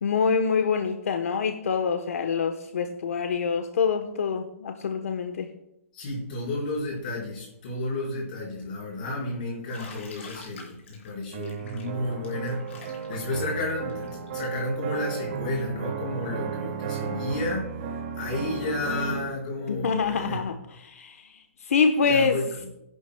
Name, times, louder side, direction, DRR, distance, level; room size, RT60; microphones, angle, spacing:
voice 1, 0.0-5.5 19.7-20.6 20.8-21.2 21.6-22.4, left 5 dB, 75° left, 6 dB, 1.0 m, -25 dB
voice 2, 5.9-17.7 18.2-20.4 22.0-22.7, left 2 dB, 40° left, -4 dB, 4.7 m, -32 dB
Bathtub (filling or washing), 9.7-15.4, left 4 dB, 60° left, 4.3 m, -47 dB
sound 1, 11.3-19.3, right 6 dB, 35° right, 1.4 m, -34 dB
19.5 x 11.0 x 2.2 m, 0.84 s
hypercardioid pair, 170°, 8 cm